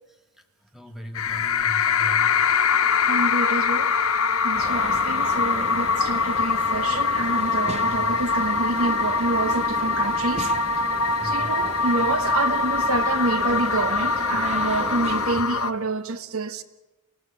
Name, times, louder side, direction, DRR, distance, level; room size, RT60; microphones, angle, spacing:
voice 1, 0.7-2.8 7.9-8.2 11.1-11.5, equal, ahead, 2.7 m, -39 dB
sound 1, 1.2-15.7, left 5 dB, 85° left, 1.1 m, -23 dB
voice 2, 2.1-2.7 3.1-4.0 4.4-10.5 11.2-16.6, right 2 dB, 75° right, 1.2 m, -28 dB
sound 2, 4.5-15.4, right 2 dB, 30° right, 1.6 m, -36 dB
27.0 x 17.0 x 9.0 m
head